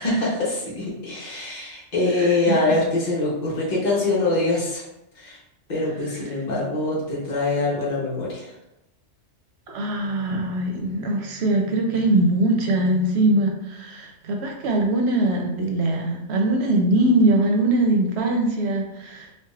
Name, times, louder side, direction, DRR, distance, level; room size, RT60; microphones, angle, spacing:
voice 1, 0.0-4.8 5.1-5.4 5.7-8.5, left 2 dB, 40° left, -4 dB, 1.1 m, -24 dB
voice 2, 2.2-2.6 9.7-19.4, right 1 dB, 70° right, 2 dB, 0.9 m, -22 dB
4.6 x 2.4 x 2.4 m, 0.85 s
omnidirectional pair, 1.2 m